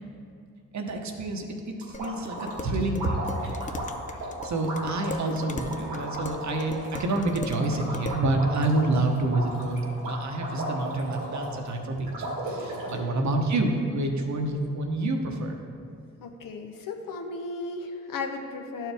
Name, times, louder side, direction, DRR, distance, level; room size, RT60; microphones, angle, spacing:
voice 1, 0.7-3.2 4.4-15.6, right 2 dB, 55° right, 3 dB, 1.0 m, -28 dB
sound 1, 1.8-11.7 12.1-13.0, right 1 dB, 90° right, 1.8 m, -35 dB
Dishes pots and pans, 1.9-8.3, left 3 dB, 25° left, 0.5 m, -39 dB
voice 2, 16.2-18.9, left 3 dB, 70° left, 4 dB, 0.8 m, -35 dB
11.0 x 4.6 x 3.4 m, 2.4 s
supercardioid pair, 45°, 34 cm